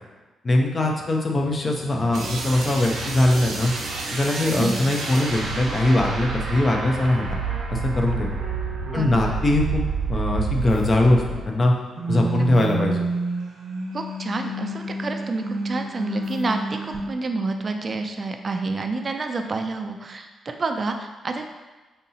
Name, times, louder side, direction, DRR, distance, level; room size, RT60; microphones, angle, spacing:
voice 1, 0.4-3.7 4.1-7.4 7.7-8.3 8.9-9.8 10.1-11.7 12.1-13.0, left 1 dB, 35° left, 1 dB, 0.6 m, -21 dB
sound 1, 2.1-11.7 11.9-17.0, right 3 dB, 80° right, 0.7 m, -29 dB
voice 2, 4.4-4.8 8.9-9.4 12.3-12.5 13.9-21.5, right 3 dB, 35° right, 5 dB, 0.4 m, -29 dB
5.2 x 2.8 x 2.8 m, 1.2 s
cardioid pair, 105°, 0 cm